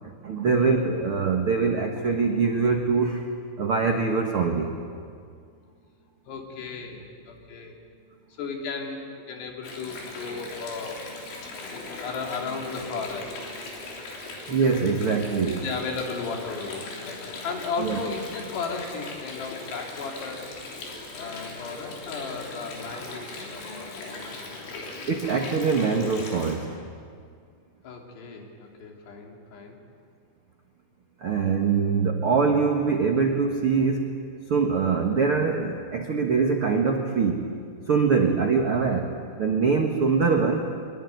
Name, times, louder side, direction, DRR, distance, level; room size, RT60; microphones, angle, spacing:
voice 1, 0.0-3.3 3.6-4.8 14.5-15.6 17.8-18.0 25.1-26.7 31.2-34.1 34.5-37.4 37.9-39.1 39.4-40.7, right 5 dB, 75° right, 3 dB, 1.2 m, -23 dB
voice 2, 6.3-7.8 8.4-9.0 9.3-11.0 11.7-13.5 15.5-20.4 21.1-24.2 27.8-29.8 38.3-38.5, left 4 dB, 70° left, 1 dB, 5.0 m, -35 dB
Water, 9.6-26.6, left 3 dB, 90° left, 6.0 m, -39 dB
24.0 x 23.0 x 9.4 m, 2.2 s
omnidirectional pair, 5.1 m